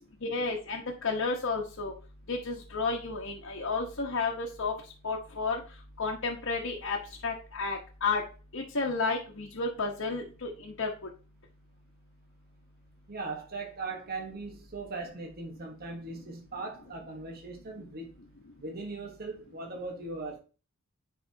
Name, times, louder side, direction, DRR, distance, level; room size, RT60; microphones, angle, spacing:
voice 1, 0.2-1.9 2.3-4.7 5.0-5.6 6.0-7.0 7.2-8.2 8.5-10.9, left 4 dB, 65° left, 1.1 m, -32 dB
voice 2, 13.1-18.1 18.6-20.4, right 3 dB, 45° right, 1.3 m, -39 dB
9.8 x 4.8 x 2.8 m
head